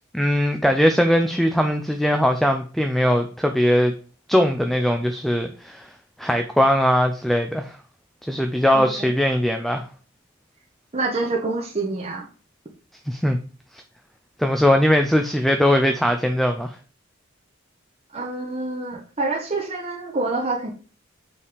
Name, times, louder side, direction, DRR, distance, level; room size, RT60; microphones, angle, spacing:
voice 1, 0.1-3.9 4.3-5.9 6.2-7.8 8.3-9.9 13.1-13.4 14.4-16.7, equal, ahead, 0.5 m, -20 dB
voice 2, 8.7-9.1 10.9-12.3 18.1-20.7, right 3 dB, 30° right, 1.0 m, -27 dB
5.6 x 4.8 x 5.0 m
head